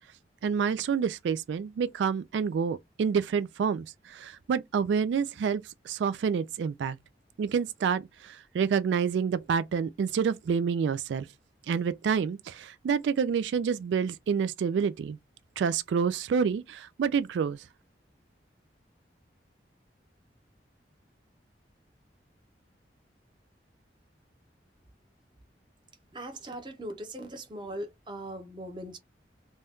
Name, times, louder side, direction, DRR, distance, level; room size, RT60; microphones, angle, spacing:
voice 1, 0.4-7.0 7.4-11.3 11.7-15.2 15.6-17.6, right 6 dB, 85° right, 0.3 m, -28 dB
voice 2, 26.1-29.0, right 1 dB, 25° right, 0.7 m, -40 dB
2.7 x 2.2 x 3.4 m
head